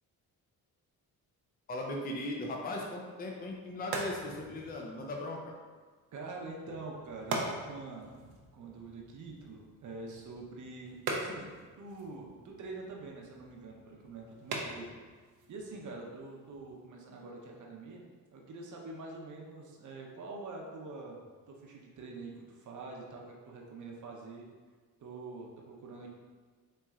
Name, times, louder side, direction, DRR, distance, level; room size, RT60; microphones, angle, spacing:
voice 1, 1.7-5.5, left 2 dB, 25° left, 0 dB, 0.5 m, -38 dB
sound 1, 3.3-16.8, right 3 dB, 80° right, 0.7 m, -43 dB
voice 2, 6.1-8.2 8.5-14.9 15.5-18.0 18.3-24.5 25.0-26.1, right 3 dB, 50° right, -1 dB, 0.8 m, -45 dB
4.3 x 3.0 x 2.4 m, 1.5 s
cardioid pair, 85°, 37 cm